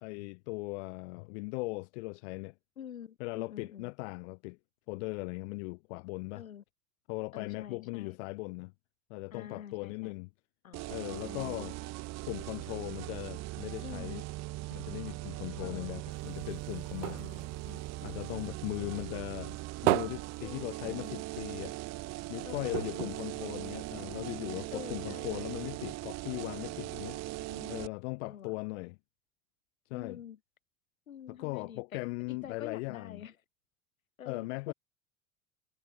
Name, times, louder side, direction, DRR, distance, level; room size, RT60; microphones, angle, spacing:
voice 1, 0.0-2.5 3.2-4.6 4.9-6.4 7.1-8.7 9.1-10.3 10.9-11.8 12.3-14.2 14.7-17.3 18.0-19.5 19.8-21.7 22.3-27.2 27.7-29.0 29.9-30.2 31.3-33.2 34.2-34.7, left 26 dB, 55° left, 1.4 m, -39 dB
voice 2, 2.8-3.9 6.3-6.6 7.3-8.2 9.3-10.1 10.6-11.7 13.8-14.2 15.6-15.9 17.1-17.8 18.8-19.5 20.4-21.2 22.4-23.2 24.5-25.4 27.3-27.7 28.2-28.5 29.9-30.4 31.1-32.0 32.3-33.3 34.2-34.7, left 9 dB, 80° left, 3.1 m, -47 dB
sound 1, 10.7-27.9, right 19 dB, 40° right, 1.1 m, -40 dB
sound 2, 16.1-18.8 19.1-21.4 21.7-21.8 22.1-22.2 22.7-24.2 24.8-24.9, right 19 dB, 60° right, 0.7 m, -35 dB
figure-of-eight pair, 80°, 41 cm